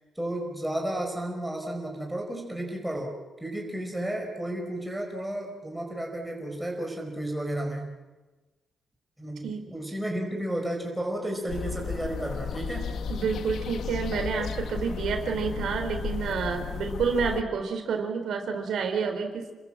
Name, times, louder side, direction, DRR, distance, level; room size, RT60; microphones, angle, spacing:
voice 1, 0.1-8.0 9.2-12.9, right 1 dB, 5° right, 0 dB, 4.8 m, -33 dB
voice 2, 9.4-9.7 13.1-19.5, right 5 dB, 80° right, 5 dB, 4.0 m, -29 dB
sound 1, 11.5-17.4, left 6 dB, 75° left, 1.3 m, -34 dB
30.0 x 21.5 x 7.6 m, 1.2 s
wide cardioid pair, 165°, 0 cm